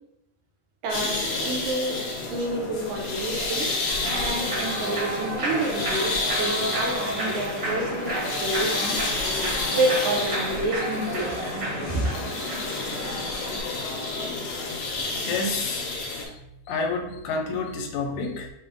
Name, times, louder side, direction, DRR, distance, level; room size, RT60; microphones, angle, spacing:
voice 1, 0.8-2.0 2.3-3.7 4.0-9.0 9.7-11.4 11.9-12.1, right 2 dB, 80° right, 1 dB, 2.1 m, -28 dB
sound 1, 0.9-16.2, left 3 dB, 65° left, 1.7 m, -30 dB
Human voice / Clapping / Cheering, 3.9-13.6, right 1 dB, 55° right, 1.2 m, -32 dB
voice 2, 15.2-15.9 16.7-18.5, left 3 dB, 85° left, 3 dB, 2.0 m, -29 dB
5.9 x 2.0 x 3.7 m, 0.87 s
omnidirectional pair, 3.4 m